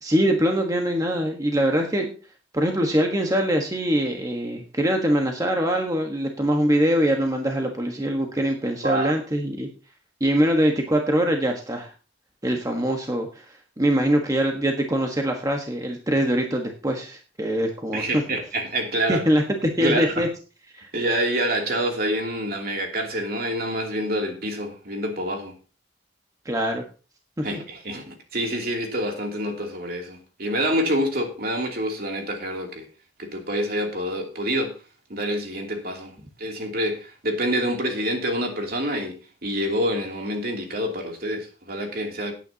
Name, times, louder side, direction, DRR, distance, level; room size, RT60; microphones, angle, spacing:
voice 1, 0.0-2.1 2.5-9.7 10.2-11.9 12.4-13.4 13.8-18.2 19.1-20.3 20.7-20.9 26.4-26.8 27.4-27.6, equal, 20° right, 1.3 m, -23 dB
voice 2, 8.8-9.1 17.9-19.2 19.8-20.3 20.9-25.5 27.4-32.8 33.2-34.8 35.1-36.1 36.4-42.3, equal, 55° right, 2.8 m, -27 dB
18.0 x 9.2 x 2.8 m
head